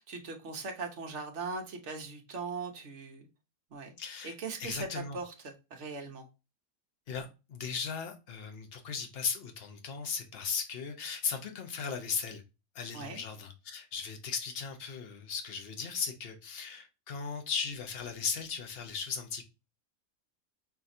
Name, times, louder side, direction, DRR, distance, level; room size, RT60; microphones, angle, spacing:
voice 1, 0.0-3.3 3.7-3.9 4.2-4.9 5.1-6.3 12.9-13.2, right 4 dB, 60° right, 1.1 m, -40 dB
voice 2, 4.0-4.3 4.6-5.2 7.1-12.4 12.7-19.4, left 6 dB, 50° left, 1.0 m, -37 dB
5.8 x 3.0 x 2.6 m
omnidirectional pair, 1.5 m